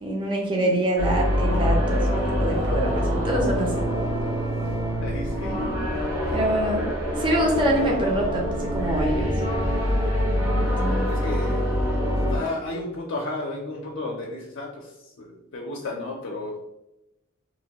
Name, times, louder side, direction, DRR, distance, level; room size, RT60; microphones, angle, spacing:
voice 1, 0.0-3.9 5.3-5.8 6.3-6.9 7.2-8.5 8.7-9.3 10.3-11.1, right 1 dB, 25° right, 0 dB, 0.5 m, -25 dB
sound 1, 1.0-12.4, equal, 90° right, 0.7 m, -25 dB
voice 2, 5.0-5.6 11.1-11.7 12.3-16.6, left 2 dB, 65° left, -1 dB, 0.4 m, -33 dB
2.9 x 2.2 x 2.7 m, 0.90 s
head